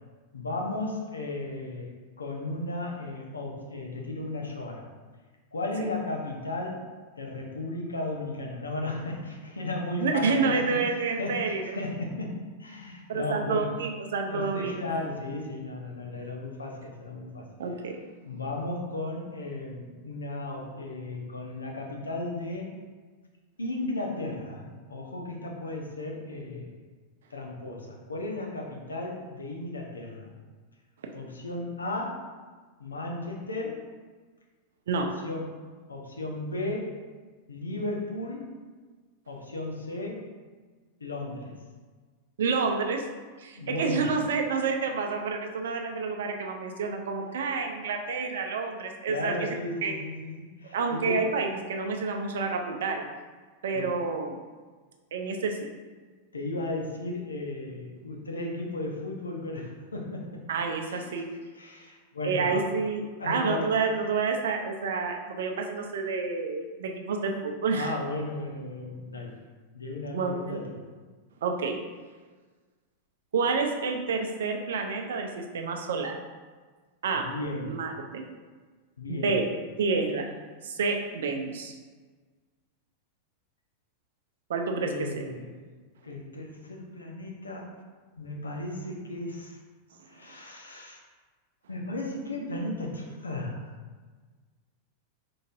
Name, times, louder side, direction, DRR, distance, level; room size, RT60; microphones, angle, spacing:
voice 1, 0.3-1.9 2.2-4.9 5.5-6.8 7.2-10.8 11.2-13.7 14.3-17.5 18.2-22.8 23.6-26.7 27.3-30.3 31.1-32.2 32.8-33.8 34.9-36.9 37.5-38.5 39.3-40.2 41.0-41.5 43.6-44.2 49.1-51.2 53.7-54.0 56.3-60.4 60.9-61.2 61.5-62.6 63.2-63.8 67.7-69.4 69.7-70.8 77.1-77.8 79.0-79.4 84.8-85.5 86.0-87.7 88.2-89.6 90.1-91.0 91.7-93.7, left 2 dB, 75° left, 0 dB, 0.8 m, -35 dB
voice 2, 10.0-11.6 13.1-14.9 17.6-18.0 34.9-35.1 42.4-43.0 43.4-49.5 49.8-50.0 50.7-53.1 53.6-54.4 55.1-55.7 60.5-61.3 62.2-67.9 70.1-70.6 71.4-71.8 73.3-76.2 77.0-77.3 77.6-78.3 79.1-79.5 79.8-80.3 80.6-81.7 84.5-85.1, right 4 dB, 60° right, 3 dB, 0.5 m, -29 dB
5.1 x 3.8 x 2.5 m, 1.4 s
figure-of-eight pair, 90°, 0 cm